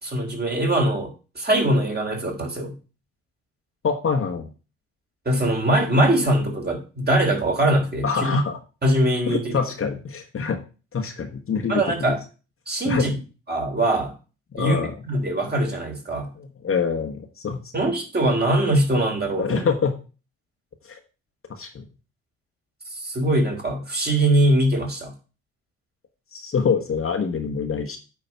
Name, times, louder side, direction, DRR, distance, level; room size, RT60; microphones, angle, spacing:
voice 1, 0.0-2.7 5.2-8.4 8.8-9.6 11.7-12.2 12.7-13.1 13.5-14.1 14.6-16.3 17.7-19.6 22.9-25.1, right 1 dB, 25° right, 1 dB, 3.3 m, -22 dB
voice 2, 3.8-4.5 8.0-8.6 9.3-10.6 10.9-12.2 12.8-13.1 14.5-14.9 16.3-17.6 19.4-19.9 20.8-21.0 21.5-21.8 26.3-28.0, left 6 dB, 40° left, 4 dB, 1.5 m, -25 dB
9.2 x 3.9 x 5.8 m, 0.34 s
hypercardioid pair, 55°, 35 cm